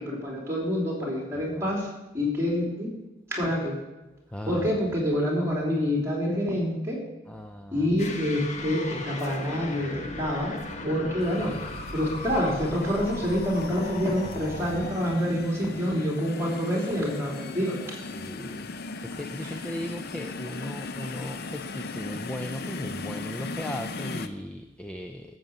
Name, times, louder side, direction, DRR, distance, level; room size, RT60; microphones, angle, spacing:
voice 1, 0.0-1.9 2.1-2.9 3.3-3.7 4.4-7.0 7.7-10.5 10.8-11.6 11.9-17.9 19.4-19.7, equal, 15° right, -2 dB, 3.4 m, -27 dB
voice 2, 4.3-4.7 7.3-7.7 9.7-9.8 18.1-18.7 19.0-25.4, left 1 dB, 5° left, 6 dB, 0.5 m, -37 dB
Bug bung, 8.0-14.9, left 2 dB, 35° left, 1.1 m, -37 dB
sound 1, 11.2-24.3, left 3 dB, 55° left, 0.7 m, -38 dB
12.5 x 7.9 x 7.1 m, 1.1 s
head